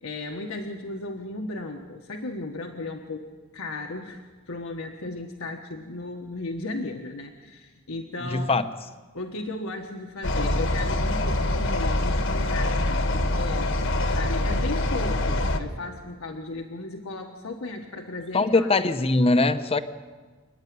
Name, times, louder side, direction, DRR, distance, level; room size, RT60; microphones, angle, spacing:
voice 1, 0.0-8.5 9.1-18.7, left 2 dB, 80° left, 2 dB, 1.4 m, -35 dB
voice 2, 8.2-8.7 18.3-19.8, left 2 dB, 30° left, 10 dB, 0.8 m, -21 dB
sound 1, 10.2-15.6, left 1 dB, 65° left, 1.4 m, -25 dB
28.5 x 9.8 x 9.5 m, 1.4 s
head